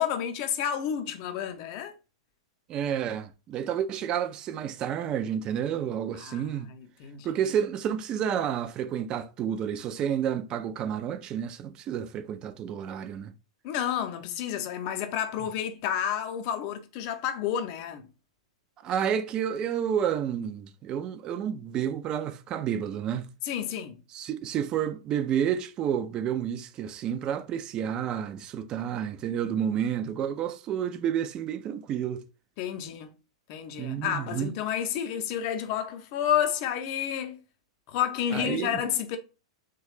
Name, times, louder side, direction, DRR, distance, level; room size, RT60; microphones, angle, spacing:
voice 1, 0.0-1.9 6.2-7.4 13.6-18.1 23.4-24.0 32.6-33.1 33.5-37.4 37.9-39.2, left 9 dB, 45° left, 0.5 m, -30 dB
voice 2, 2.7-6.7 7.2-13.3 18.8-23.3 24.1-32.3 33.8-34.5 38.3-38.8, right 9 dB, 30° right, 0.3 m, -30 dB
3.0 x 2.2 x 3.1 m
figure-of-eight pair, 100°, 3 cm